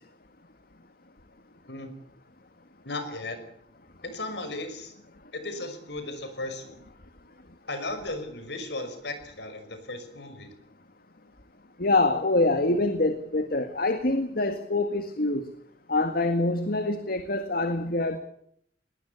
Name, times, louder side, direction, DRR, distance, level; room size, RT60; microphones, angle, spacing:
voice 1, 2.8-3.4 4.0-4.9 5.3-6.8 7.7-10.5, left 2 dB, 75° left, 9 dB, 5.8 m, -36 dB
voice 2, 11.8-15.4 15.9-18.2, left 2 dB, 60° left, 8 dB, 1.8 m, -25 dB
21.0 x 19.5 x 8.4 m, 0.69 s
head